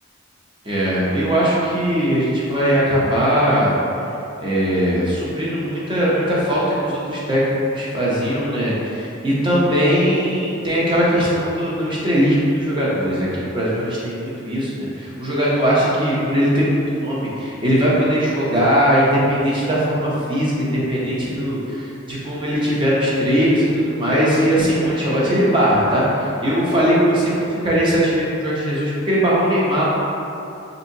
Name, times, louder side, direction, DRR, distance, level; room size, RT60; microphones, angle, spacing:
voice 1, 0.6-3.7 4.4-29.8, equal, 25° right, -7 dB, 0.7 m, -19 dB
3.5 x 2.7 x 2.7 m, 2.7 s
head